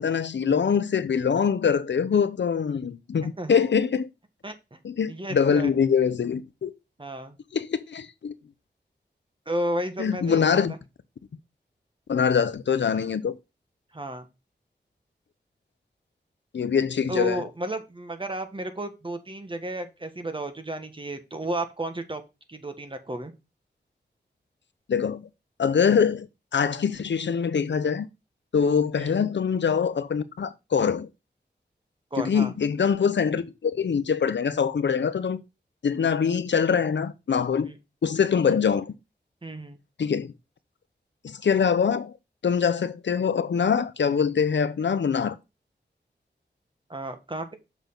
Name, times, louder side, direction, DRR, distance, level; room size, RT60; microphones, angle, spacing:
voice 1, 0.0-4.1 4.8-6.7 7.5-8.3 10.0-10.7 12.1-13.4 16.5-17.4 24.9-25.3 25.6-26.3 26.5-28.1 28.5-31.1 32.2-35.4 35.8-37.7 38.0-38.9 40.0-40.3 41.2-42.1 42.4-45.4, left 6 dB, 80° left, 0.8 m, -24 dB
voice 2, 4.4-4.8 5.1-5.7 7.0-7.4 9.4-10.8 13.9-14.3 17.1-22.2 22.5-23.3 29.0-29.2 32.1-32.5 37.6-37.8 39.4-39.8 46.9-47.6, right 1 dB, 30° right, 1.6 m, -33 dB
7.1 x 6.0 x 3.8 m
wide cardioid pair, 70°, 18 cm